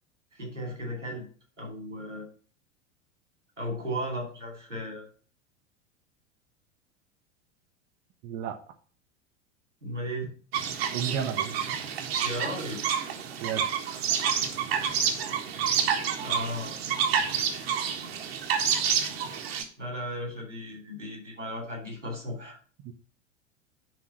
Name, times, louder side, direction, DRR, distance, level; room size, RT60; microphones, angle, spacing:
voice 1, 0.3-1.3 1.6-2.3 3.6-5.0 9.8-10.3 11.1-11.3 12.2-12.8 16.2-16.7 19.8-22.6, equal, 85° right, 1 dB, 3.8 m, -35 dB
voice 2, 8.2-8.6 10.9-11.5 13.4-13.7 22.8-22.9, right 9 dB, 35° right, 6 dB, 0.9 m, -32 dB
sound 1, 10.5-19.6, right 7 dB, 55° right, 1.5 m, -29 dB
10.5 x 3.7 x 5.9 m, 0.41 s
figure-of-eight pair, 85°, 36 cm